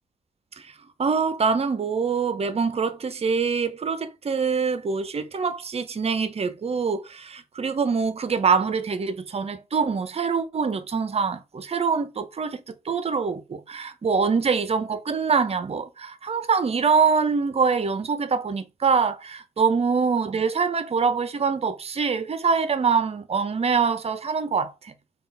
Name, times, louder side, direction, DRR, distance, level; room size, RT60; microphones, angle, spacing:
voice 1, 1.0-12.6 12.8-24.9, right 5 dB, 40° right, 0.7 m, -24 dB
3.6 x 2.4 x 3.8 m
supercardioid pair, 55°, 15 cm